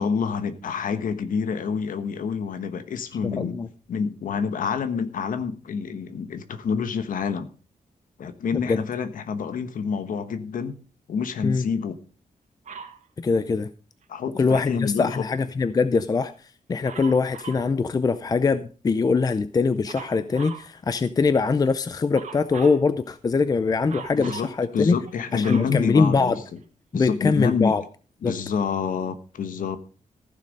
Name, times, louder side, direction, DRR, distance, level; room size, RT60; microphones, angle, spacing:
voice 1, 0.0-3.5 3.9-7.5 8.2-10.8 11.1-12.0 14.1-15.3 24.1-24.5 24.7-26.3 26.9-27.7 28.2-29.8, left 6 dB, 90° left, 10 dB, 1.2 m, -27 dB
voice 2, 3.2-3.7 8.7-8.8 11.4-11.6 13.2-13.7 14.4-16.3 16.7-25.0 25.3-26.4 26.9-27.8 28.2-28.3, left 4 dB, 30° left, 13 dB, 0.5 m, -22 dB
Dog, 12.7-13.0 16.8-17.7 19.9-20.7 22.1-22.8 23.9-24.5 25.1-26.6 27.3-27.4, right 6 dB, 65° right, 1.9 m, -40 dB
15.0 x 6.7 x 5.2 m, 0.37 s
wide cardioid pair, 165°, 14 cm